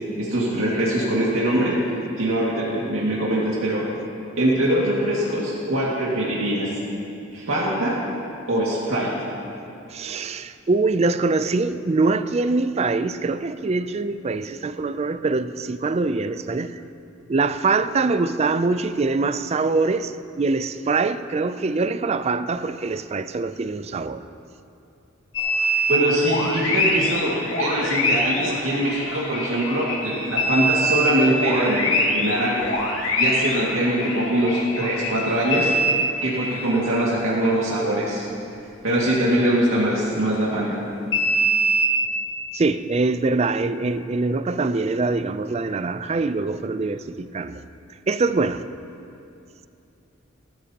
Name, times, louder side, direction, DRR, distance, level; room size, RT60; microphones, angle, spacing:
voice 1, 0.1-1.8 2.2-3.8 4.4-6.7 7.3-7.9 8.5-9.1 25.9-32.7 33.2-35.7 36.2-38.3 38.8-40.8, right 1 dB, 75° right, -6 dB, 2.1 m, -22 dB
voice 2, 9.9-16.7 17.3-24.2 42.5-47.6 48.1-48.6, right 3 dB, 30° right, 12 dB, 0.4 m, -23 dB
sound 1, 25.3-36.9 41.1-41.9, equal, 70° left, 1.8 m, -24 dB
19.5 x 13.5 x 2.9 m, 2.7 s
head